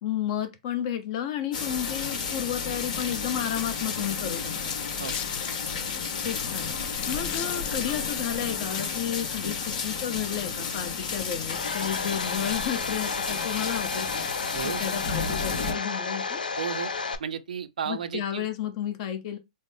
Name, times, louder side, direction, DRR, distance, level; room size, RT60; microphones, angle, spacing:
voice 1, 0.0-4.8 6.2-14.2 14.6-16.4 17.9-19.4, left 10 dB, 45° left, 0.8 m, -32 dB
sound 1, 1.5-15.7, left 5 dB, 60° left, 1.3 m, -32 dB
sound 2, 3.0-8.0, left 11 dB, 30° left, 0.4 m, -42 dB
Domestic sounds home sounds, 11.5-17.2, left 4 dB, 90° left, 0.5 m, -32 dB
voice 2, 16.6-16.9 17.2-18.5, right 8 dB, 75° right, 0.5 m, -33 dB
4.0 x 2.0 x 3.5 m
hypercardioid pair, 125°, 4 cm